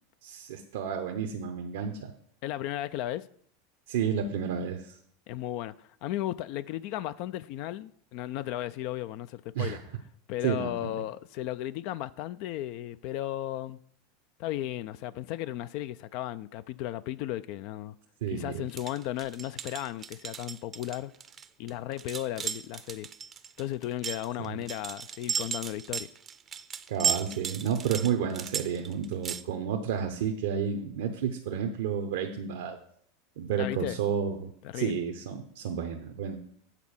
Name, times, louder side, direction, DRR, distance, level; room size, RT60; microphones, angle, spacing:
voice 1, 0.2-2.1 3.9-5.0 9.5-9.8 10.4-10.7 18.2-18.6 24.5-24.6 26.9-32.8 33.4-36.4, right 7 dB, 70° right, 0.7 m, -31 dB
voice 2, 2.4-3.3 5.3-9.8 10.3-13.8 14.4-17.9 18.3-21.1 21.6-23.1 23.6-26.1 33.6-34.0 34.6-35.0, left 13 dB, 60° left, 0.3 m, -35 dB
sound 1, 18.7-29.4, right 7 dB, 30° right, 0.6 m, -35 dB
8.2 x 4.3 x 7.1 m
hypercardioid pair, 95°, 0 cm